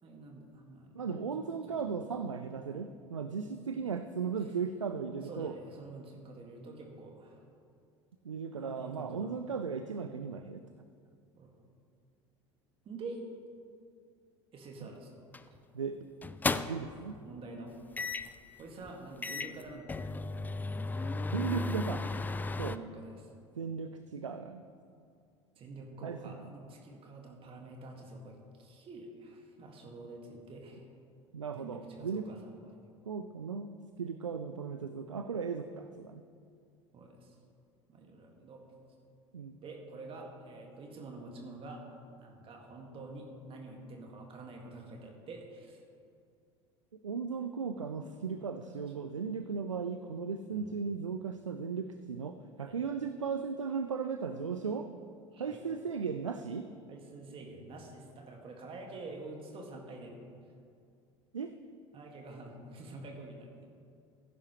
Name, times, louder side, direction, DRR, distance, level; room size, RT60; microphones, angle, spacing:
voice 1, 0.0-0.9 1.7-2.0 5.2-7.4 8.5-9.4 11.4-11.5 12.9-13.2 14.5-15.2 17.2-17.8 18.6-20.2 22.6-23.3 25.5-30.8 31.6-32.6 36.9-37.4 37.9-38.6 39.6-45.8 47.8-48.2 48.7-49.2 50.5-50.6 52.6-52.8 55.3-55.6 56.9-60.2 61.9-63.7, right 2 dB, 35° right, 1 dB, 2.1 m, -47 dB
voice 2, 0.9-5.5 8.2-10.6 14.8-14.9 15.7-16.1 16.7-17.2 21.3-22.1 22.6-22.8 23.5-24.6 26.0-26.5 31.3-32.3 33.1-36.2 39.3-39.6 47.0-54.9 55.4-56.7 61.3-61.5, right 5 dB, 85° right, 9 dB, 0.4 m, -36 dB
sound 1, 15.3-15.6 16.2-17.0 18.0-18.4 18.9-19.0 19.2-22.8, left 3 dB, 10° left, 0.4 m, -34 dB
16.0 x 10.0 x 3.3 m, 2.3 s
figure-of-eight pair, 70°, 16 cm